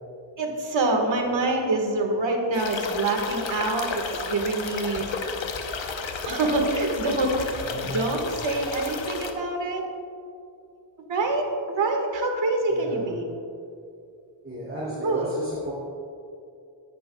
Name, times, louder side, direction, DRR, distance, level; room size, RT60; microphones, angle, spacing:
voice 1, 0.4-5.1 6.2-9.8 11.1-13.3 15.0-15.2, right 2 dB, 75° right, 2 dB, 1.8 m, -26 dB
sound 1, 2.5-9.3, left 4 dB, 85° left, 1.0 m, -33 dB
voice 2, 7.5-8.4 12.7-13.1 14.4-15.7, right 1 dB, 25° right, -8 dB, 2.7 m, -34 dB
17.0 x 11.0 x 2.3 m, 2.5 s
wide cardioid pair, 130°, 45 cm